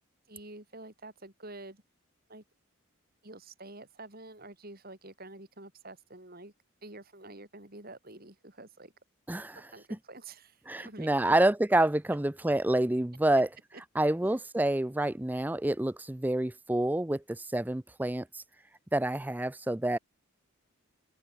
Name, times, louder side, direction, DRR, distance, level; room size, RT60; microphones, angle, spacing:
voice 1, 0.3-1.8 2.3-2.4 3.2-6.5 6.8-8.9 9.5-11.4 13.7-13.8, right 2 dB, 45° right, 4.7 m, -48 dB
voice 2, 9.3-9.6 10.7-13.5 14.0-18.4 18.9-20.0, right 1 dB, 10° right, 0.4 m, -28 dB
open air
head